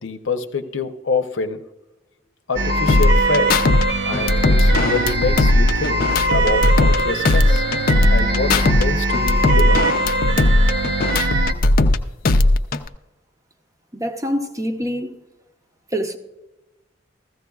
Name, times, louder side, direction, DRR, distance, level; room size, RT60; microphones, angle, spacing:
voice 1, 0.0-1.6 2.5-3.6 4.1-6.0 6.3-7.6 8.1-9.9, left 4 dB, 85° left, 0.7 m, -25 dB
sound 1, 2.6-11.5, right 2 dB, 60° right, 0.7 m, -22 dB
sound 2, 2.9-3.8 4.1-7.0 7.2-8.8 9.1-12.0 12.2-12.9, left 2 dB, 50° left, 0.5 m, -17 dB
voice 2, 13.9-15.1 15.9-16.2, equal, 15° right, 0.7 m, -25 dB
15.5 x 14.5 x 2.3 m
head